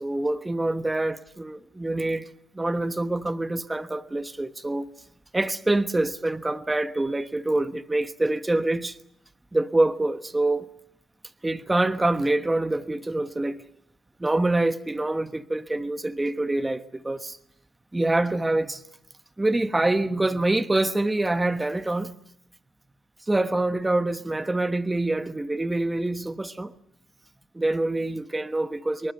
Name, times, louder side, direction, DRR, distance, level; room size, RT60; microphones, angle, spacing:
voice 1, 0.0-2.3 2.5-4.9 5.3-9.0 9.5-10.7 11.4-13.6 14.2-17.4 17.9-18.8 19.4-22.1 23.3-26.7 27.5-29.1, right 2 dB, 15° right, 1.2 m, -25 dB
25.5 x 24.0 x 6.7 m
cardioid pair, 90°, 0 cm